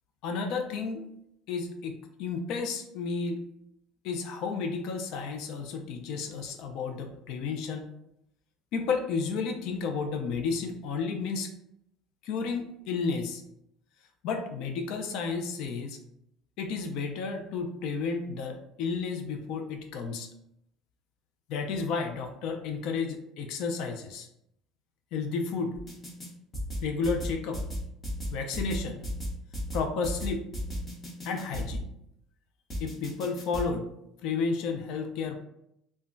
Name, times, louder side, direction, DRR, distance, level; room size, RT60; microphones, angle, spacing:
voice 1, 0.2-1.1 1.5-3.4 4.0-7.9 8.7-11.5 12.2-13.4 14.2-16.0 16.6-20.3 21.5-24.3 25.1-25.8 26.8-27.6 28.3-29.0 29.7-30.5 31.2-31.9 32.8-33.9 34.2-35.4, left 4 dB, 60° left, 4 dB, 0.4 m, -32 dB
sound 1, 25.8-26.3 26.5-31.8 32.7-33.7, equal, 20° left, 0.8 m, -34 dB
2.2 x 2.1 x 3.7 m, 0.78 s
cardioid pair, 160°, 0 cm